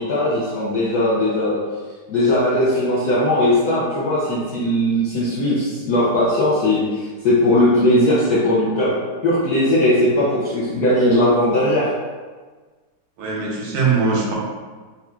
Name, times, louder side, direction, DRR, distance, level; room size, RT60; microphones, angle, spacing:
voice 1, 0.0-1.6 2.1-9.0 9.2-11.9, left 1 dB, 75° left, -8 dB, 0.9 m, -18 dB
voice 2, 13.2-14.4, right 4 dB, 90° right, -3 dB, 1.6 m, -21 dB
4.2 x 2.4 x 2.3 m, 1.4 s
omnidirectional pair, 2.4 m